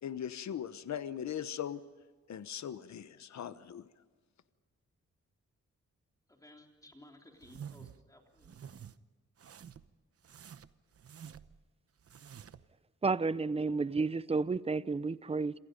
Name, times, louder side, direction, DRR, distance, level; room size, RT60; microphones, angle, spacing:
voice 1, 0.0-1.8 2.3-3.8, left 9 dB, 70° left, 1.0 m, -39 dB
voice 2, 6.3-8.7, left 1 dB, 10° left, 3.4 m, -58 dB
sound 1, 7.4-8.0 8.4-8.9 9.4-9.9 10.2-11.6 12.0-12.7, right 8 dB, 55° right, 0.9 m, -49 dB
voice 3, 13.0-15.6, right 4 dB, 20° right, 0.6 m, -31 dB
27.5 x 27.0 x 5.3 m
wide cardioid pair, 150°, 29 cm